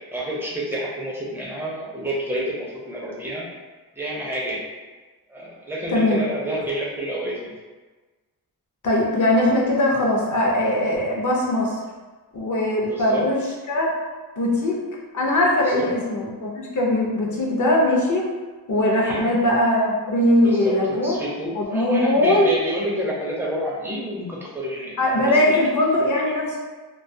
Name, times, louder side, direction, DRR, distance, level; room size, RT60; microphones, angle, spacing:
voice 1, 0.1-3.4 4.0-4.6 5.3-7.5 12.9-13.3 15.6-15.9 18.9-19.3 20.4-25.6, equal, 5° right, -5 dB, 0.5 m, -29 dB
voice 2, 5.9-6.2 8.8-11.8 12.3-13.4 13.7-13.9 14.4-14.8 15.1-18.3 18.7-21.2 21.6-22.5 25.0-26.6, left 1 dB, 45° left, -2 dB, 0.5 m, -20 dB
2.3 x 2.2 x 2.6 m, 1.3 s
wide cardioid pair, 130°, 41 cm